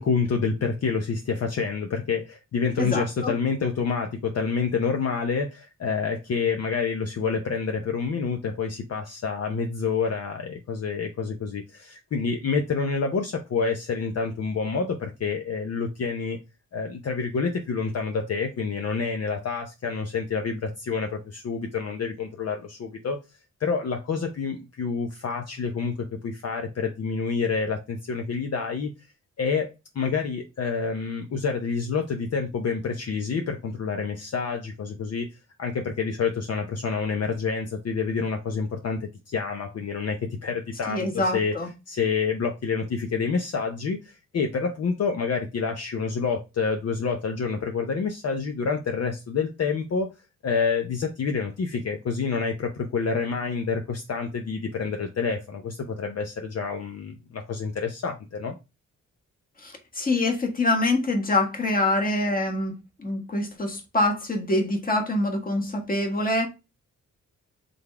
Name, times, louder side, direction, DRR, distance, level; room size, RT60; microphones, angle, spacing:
voice 1, 0.0-16.4 16.7-23.2 23.6-25.9 26.2-28.9 29.4-29.7 29.9-35.3 35.6-41.5 41.9-50.1 50.4-58.5, left 5 dB, 55° left, 0.8 m, -28 dB
voice 2, 2.8-3.3 40.9-41.7 59.6-62.7 63.0-66.5, left 2 dB, 30° left, 1.4 m, -25 dB
3.9 x 3.6 x 3.3 m
cardioid pair, 100°, 30 cm